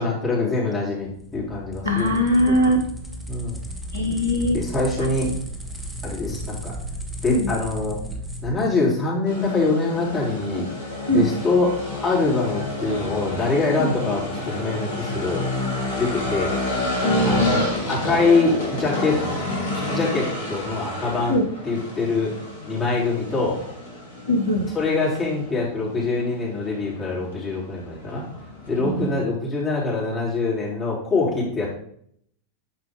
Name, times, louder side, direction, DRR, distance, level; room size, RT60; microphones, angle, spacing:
voice 1, 0.0-2.2 2.5-2.6 3.3-3.6 4.5-5.3 6.0-6.7 7.2-8.0 8.4-10.6 11.1-15.5 16.0-16.5 17.2-19.2 19.7-21.4 21.6-22.3 22.7-23.6 24.7-28.2 28.7-31.7, left 3 dB, 20° left, -5 dB, 3.4 m, -24 dB
sound 1, 1.1-8.7, right 1 dB, 5° right, 1.4 m, -34 dB
voice 2, 1.8-2.8 3.9-4.6 7.3-7.5 10.5-10.6 11.1-11.3 13.8-13.9 15.6-15.7 17.0-17.7 21.3-21.4 24.3-24.7 28.8-29.1, left 1 dB, 90° left, 2 dB, 1.8 m, -21 dB
sound 2, 9.3-29.1, left 1 dB, 70° left, 2.6 m, -30 dB
11.0 x 4.7 x 3.6 m, 0.64 s
figure-of-eight pair, 90°, 0 cm